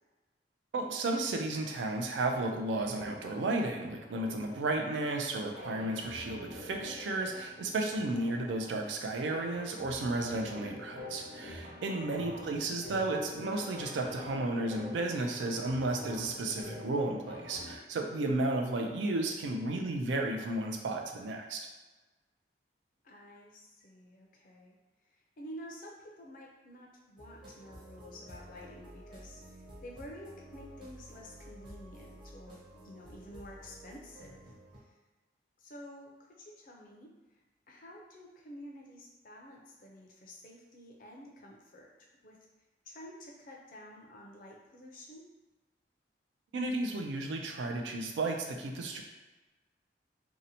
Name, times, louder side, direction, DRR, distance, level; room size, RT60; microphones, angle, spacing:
voice 1, 0.7-21.6 46.5-49.0, right 2 dB, 85° right, 3 dB, 0.4 m, -33 dB
sound 1, 2.7-17.7, left 1 dB, 55° right, 0.9 m, -47 dB
voice 2, 23.0-24.8 25.1-34.4 35.6-37.1 37.7-42.4 42.9-45.3, equal, 50° left, -1 dB, 0.4 m, -50 dB
sound 2, 27.2-34.8, right 1 dB, 25° right, 0.6 m, -51 dB
2.7 x 2.1 x 2.7 m, 1.2 s
head